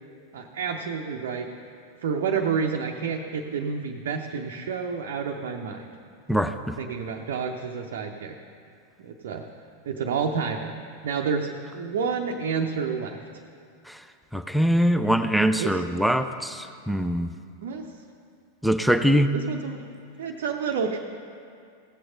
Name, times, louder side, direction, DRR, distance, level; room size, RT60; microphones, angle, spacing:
voice 1, 0.3-1.5 2.0-5.9 6.8-8.4 9.0-9.4 9.8-10.7 11.0-13.2 15.6-15.8 17.6-17.9 19.3-19.8 20.2-21.0, right 6 dB, 55° right, 1 dB, 0.6 m, -29 dB
voice 2, 14.3-17.3 18.6-19.3, equal, ahead, 9 dB, 0.4 m, -22 dB
16.0 x 7.7 x 3.9 m, 2.3 s
figure-of-eight pair, 90°, 0 cm